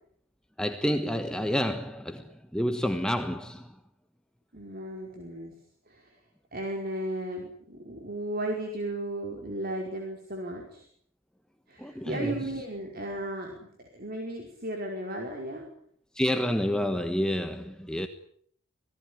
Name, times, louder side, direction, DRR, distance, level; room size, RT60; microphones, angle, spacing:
voice 1, 0.6-3.7 11.8-12.5 16.1-18.1, equal, 5° left, 1.3 m, -29 dB
voice 2, 4.5-5.5 5.9-6.2 6.5-10.9 11.7-15.7, right 1 dB, 45° right, 5.0 m, -35 dB
26.5 x 18.0 x 10.0 m
head